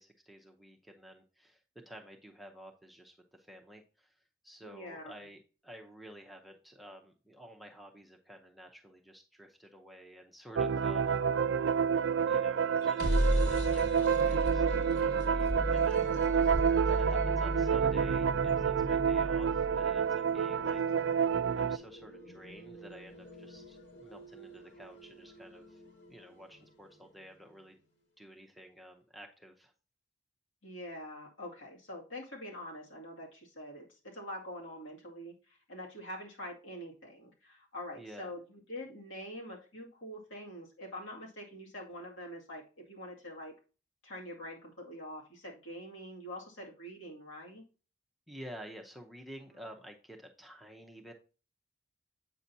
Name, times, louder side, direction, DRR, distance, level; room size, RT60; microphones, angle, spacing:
voice 1, 0.0-1.6 1.9-11.2 12.0-21.0 21.5-25.8 26.1-27.7 28.2-29.7 38.0-38.3 48.3-51.1, equal, ahead, 1 dB, 0.6 m, -51 dB
voice 2, 4.6-5.2 11.2-11.9 16.8-17.3 30.6-43.6 44.0-47.6, equal, 80° left, -2 dB, 2.1 m, -45 dB
sound 1, 10.6-21.8, right 7 dB, 65° right, 0.3 m, -29 dB
sound 2, 12.7-26.6, equal, 55° left, 1.9 m, -36 dB
8.2 x 5.7 x 2.7 m, 0.35 s
head